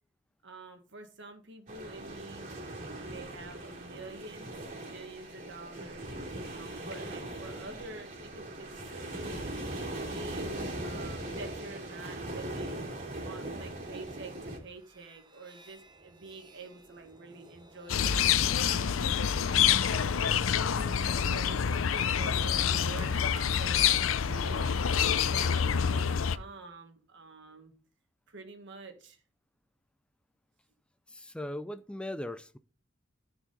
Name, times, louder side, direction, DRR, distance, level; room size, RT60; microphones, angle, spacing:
voice 1, 0.4-4.5 4.8-6.1 6.5-9.5 10.0-12.8 13.2-18.9 19.4-24.8 25.2-27.7 28.3-29.2, right 3 dB, 65° right, 1.6 m, -47 dB
sound 1, 1.7-14.6, right 1 dB, 40° right, 3.0 m, -40 dB
sound 2, 13.4-26.2, right 1 dB, 20° right, 1.0 m, -51 dB
sound 3, 17.9-26.4, left 8 dB, 85° left, 0.5 m, -27 dB
voice 2, 31.1-32.6, left 1 dB, 5° left, 0.3 m, -39 dB
13.5 x 4.9 x 4.0 m
head